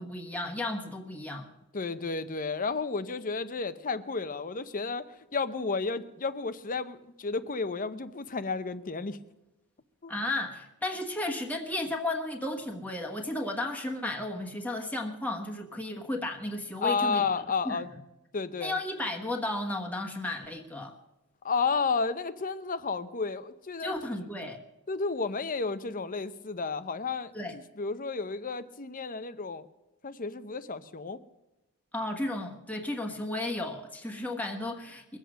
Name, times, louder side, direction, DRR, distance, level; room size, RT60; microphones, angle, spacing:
voice 1, 0.0-1.5 10.1-17.2 17.6-17.8 18.6-20.9 23.8-24.6 27.3-27.5 31.9-35.2, left 1 dB, 5° left, 2 dB, 1.3 m, -34 dB
voice 2, 1.7-9.2 10.0-10.1 16.8-17.9 18.3-18.8 21.4-23.9 24.9-29.7 30.0-31.2, left 4 dB, 35° left, 13 dB, 0.7 m, -32 dB
22.0 x 8.1 x 6.3 m, 0.96 s
head